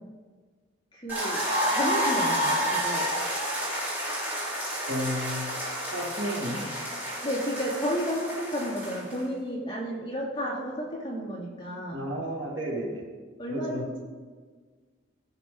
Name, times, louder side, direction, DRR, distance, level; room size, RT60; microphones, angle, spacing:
voice 1, 0.9-3.1 7.2-12.0 13.4-14.0, equal, 20° left, -5 dB, 2.3 m, -32 dB
sound 1, 1.1-9.2, equal, 10° right, 3.4 m, -30 dB
voice 2, 4.8-5.6 5.9-6.6 11.9-13.1 13.5-13.9, equal, 65° right, -1 dB, 2.0 m, -32 dB
15.5 x 6.6 x 3.8 m, 1.5 s
head